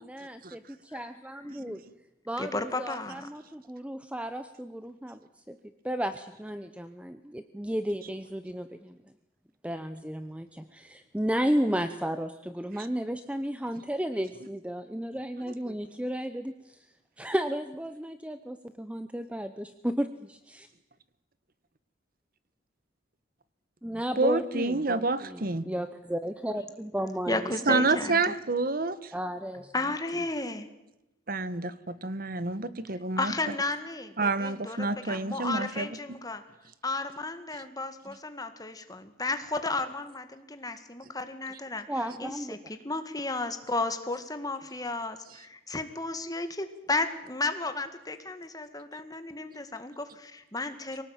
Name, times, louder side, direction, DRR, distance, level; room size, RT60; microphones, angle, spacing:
voice 1, 0.0-1.8 2.3-5.2 5.5-5.6 5.8-9.0 9.6-16.8 17.2-20.7 23.8-27.5 29.1-29.7 38.1-38.2 41.9-42.6, equal, 5° right, 10 dB, 0.8 m, -33 dB
voice 2, 2.4-3.3 27.3-28.3 29.7-30.7 33.2-36.4 36.8-41.9 42.2-51.0, left 2 dB, 20° left, 9 dB, 1.9 m, -33 dB
voice 3, 24.2-25.7 27.7-29.1 31.3-33.3 34.2-36.0, right 3 dB, 50° right, 15 dB, 1.3 m, -28 dB
24.5 x 18.5 x 9.1 m, 0.92 s
head